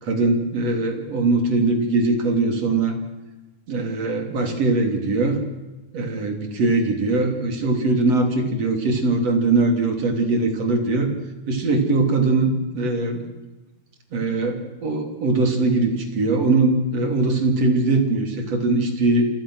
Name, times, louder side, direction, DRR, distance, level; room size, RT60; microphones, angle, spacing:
voice 1, 0.0-3.0 3.7-5.4 5.9-11.1 11.5-13.2 14.1-19.3, right 3 dB, 55° right, 4 dB, 4.3 m, -21 dB
28.5 x 25.0 x 6.4 m, 1.1 s
omnidirectional pair, 3.4 m